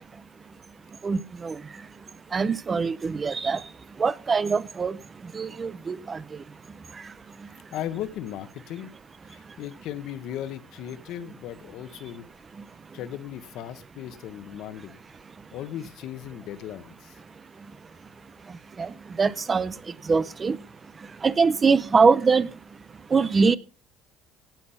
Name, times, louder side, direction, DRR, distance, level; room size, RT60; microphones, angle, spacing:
voice 1, 1.0-1.6 2.3-3.6 4.0-5.0 5.3-6.2 18.8-18.9 19.2-19.7 20.1-20.6 21.2-22.5 23.1-23.6, right 5 dB, 20° right, 0.5 m, -22 dB
voice 2, 7.7-8.9 9.2-12.3 12.9-15.0 15.5-17.2, left 11 dB, 65° left, 1.2 m, -37 dB
17.0 x 6.1 x 5.8 m
cardioid pair, 155°, 0 cm